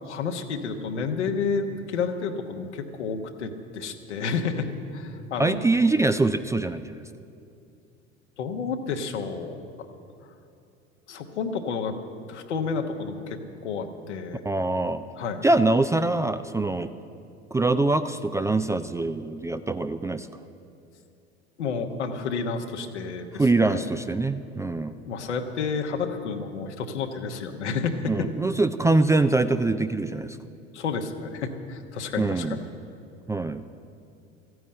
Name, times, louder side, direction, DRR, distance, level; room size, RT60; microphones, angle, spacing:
voice 1, 0.0-5.6 8.4-9.6 11.1-12.0 12.3-14.4 15.2-15.4 21.6-23.8 24.9-28.3 30.7-32.7, left 5 dB, 80° left, 4 dB, 1.3 m, -30 dB
voice 2, 5.4-7.0 14.5-15.0 15.4-16.9 17.5-20.3 23.4-24.9 28.1-30.4 32.2-32.6 33.3-33.6, right 2 dB, 10° right, 10 dB, 0.3 m, -23 dB
14.0 x 9.4 x 8.7 m, 2.6 s
hypercardioid pair, 70°, 34 cm